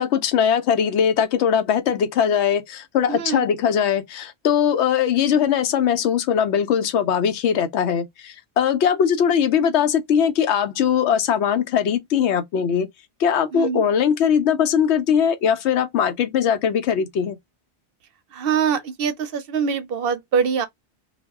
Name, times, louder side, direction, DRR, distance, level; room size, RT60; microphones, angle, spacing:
voice 1, 0.0-12.9 13.2-17.4, left 8 dB, 85° left, 0.9 m, -20 dB
voice 2, 3.1-3.5 13.5-13.8 18.3-20.7, right 6 dB, 65° right, 0.7 m, -23 dB
2.3 x 2.0 x 3.4 m
omnidirectional pair, 1.1 m